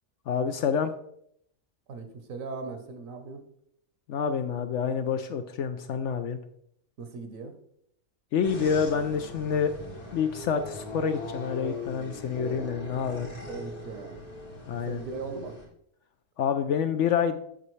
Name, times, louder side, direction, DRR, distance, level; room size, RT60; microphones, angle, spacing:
voice 1, 0.3-0.9 4.1-6.4 8.3-9.7 10.1-13.3 14.7-15.0 16.4-17.4, left 7 dB, 65° left, 8 dB, 0.8 m, -27 dB
voice 2, 1.9-3.4 7.0-7.6 13.5-14.2 14.7-15.6, right 4 dB, 65° right, 7 dB, 1.3 m, -38 dB
sound 1, 8.4-15.7, left 2 dB, 90° left, 2.7 m, -40 dB
8.4 x 6.6 x 3.2 m, 0.70 s
omnidirectional pair, 1.5 m